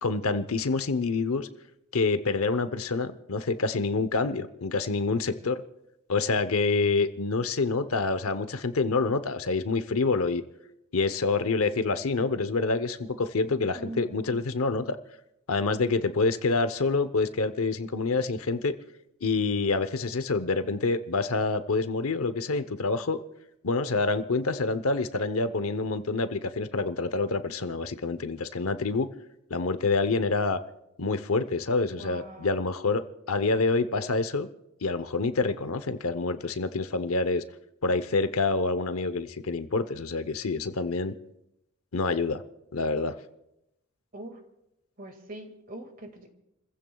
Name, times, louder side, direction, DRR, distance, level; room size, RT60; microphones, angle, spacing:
voice 1, 0.0-1.5 1.9-5.6 6.1-10.4 10.9-15.0 15.5-18.7 19.2-23.2 23.6-29.1 29.5-30.6 31.0-34.5 34.8-37.4 37.8-41.1 41.9-42.4 42.7-43.2, left 3 dB, 80° left, 11 dB, 0.8 m, -27 dB
voice 2, 13.7-14.4 32.0-32.5 44.1-44.4 45.0-46.3, right 1 dB, 40° right, 5 dB, 2.0 m, -42 dB
30.0 x 15.0 x 2.3 m, 0.86 s
head